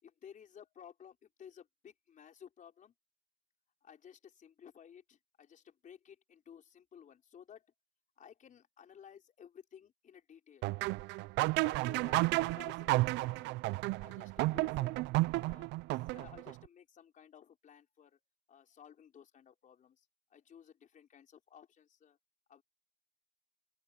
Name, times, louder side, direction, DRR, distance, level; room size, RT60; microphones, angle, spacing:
voice 1, 0.0-2.9 3.8-7.7 8.2-10.7 11.6-13.6 14.0-15.0 15.3-15.7 16.1-18.2 18.5-20.1 20.3-22.2 22.5-22.6, left 8 dB, 45° left, 4.3 m, -56 dB
sound 1, 10.6-16.5, right 21 dB, 70° right, 0.5 m, -32 dB
open air
supercardioid pair, 90°, 19 cm